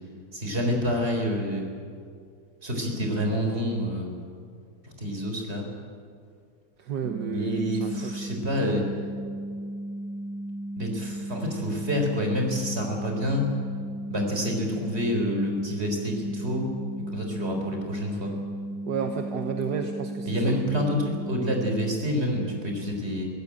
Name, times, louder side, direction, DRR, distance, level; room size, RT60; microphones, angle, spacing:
voice 1, 0.3-1.6 2.6-4.1 4.8-5.7 7.3-8.8 10.8-13.5 14.1-16.7 17.0-18.3 20.2-23.3, equal, 35° right, 2 dB, 4.5 m, -28 dB
voice 2, 6.8-8.1 18.9-20.6 20.9-21.0, right 6 dB, 70° right, 5 dB, 1.7 m, -32 dB
sound 1, 7.0-21.9, right 1 dB, 90° right, 5.6 m, -35 dB
23.0 x 17.0 x 8.7 m, 2.2 s
omnidirectional pair, 1.9 m